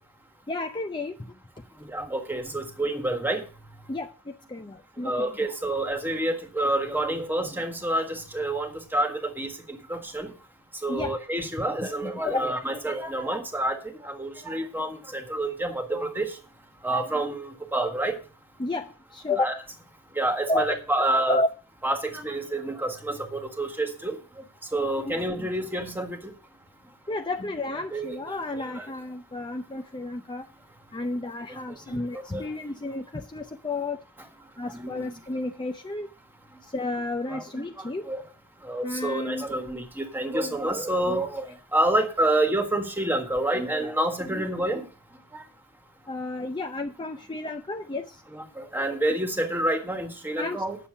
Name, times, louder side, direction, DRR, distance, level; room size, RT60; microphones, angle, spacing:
voice 1, 0.5-1.3 3.9-5.3 10.9-11.2 11.6-12.5 18.6-19.5 20.5-20.8 21.3-21.5 25.0-25.1 27.1-30.5 30.9-34.0 34.6-36.1 36.7-38.1 38.8-39.5 46.1-48.2 50.4-50.6, left 2 dB, 20° left, 0.5 m, -31 dB
voice 2, 1.9-3.4 5.0-10.3 10.8-16.3 16.8-18.1 19.4-19.5 20.1-21.4 21.8-24.2 24.7-26.3 27.9-28.9 31.9-32.0 32.3-32.4 34.7-35.2 37.3-38.2 38.6-44.9 45.3-45.4 48.3-50.8, right 1 dB, 10° right, 1.6 m, -28 dB
9.5 x 7.1 x 6.5 m
head